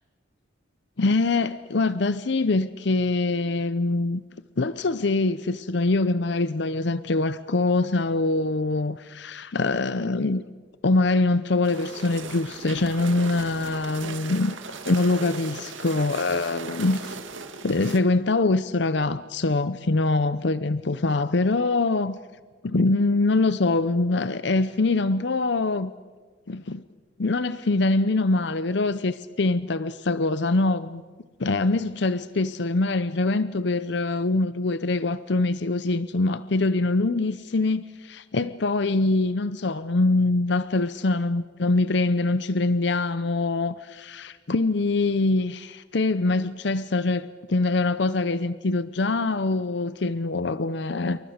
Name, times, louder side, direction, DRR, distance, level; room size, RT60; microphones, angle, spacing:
voice 1, 1.0-4.2 4.6-10.4 10.8-14.5 14.9-17.2 17.6-22.2 22.6-25.9 26.5-26.8 27.2-31.0 31.4-51.2, left 2 dB, 60° left, 0.7 m, -24 dB
sound 1, 11.6-18.0, right 4 dB, 80° right, 2.1 m, -38 dB
28.5 x 23.5 x 6.6 m
head